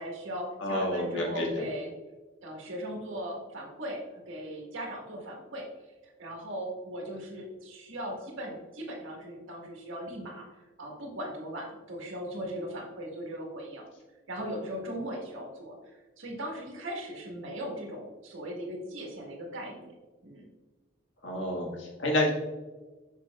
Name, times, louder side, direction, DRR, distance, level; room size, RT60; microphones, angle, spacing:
voice 1, 0.0-1.9 2.4-5.7 6.0-10.5 10.8-13.8 14.3-19.9 20.2-20.5, equal, 85° right, -1 dB, 1.7 m, -38 dB
voice 2, 0.6-1.6 21.2-22.3, left 1 dB, 70° left, -2 dB, 1.7 m, -29 dB
6.6 x 6.4 x 2.4 m, 1.3 s
head